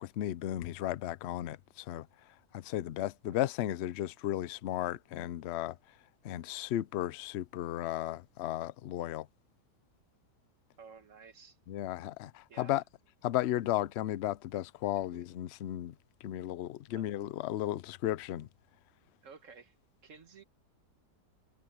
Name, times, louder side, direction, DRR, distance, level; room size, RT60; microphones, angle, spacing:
voice 1, 0.0-2.1 2.5-5.8 6.2-9.3 11.7-12.8 13.2-15.9 16.2-18.5, left 13 dB, 80° left, 0.5 m, -34 dB
voice 2, 10.8-11.6 12.5-12.8 15.1-15.2 16.9-17.1 19.2-19.8 20.0-20.4, right 5 dB, 50° right, 1.8 m, -53 dB
omnidirectional pair, 1.8 m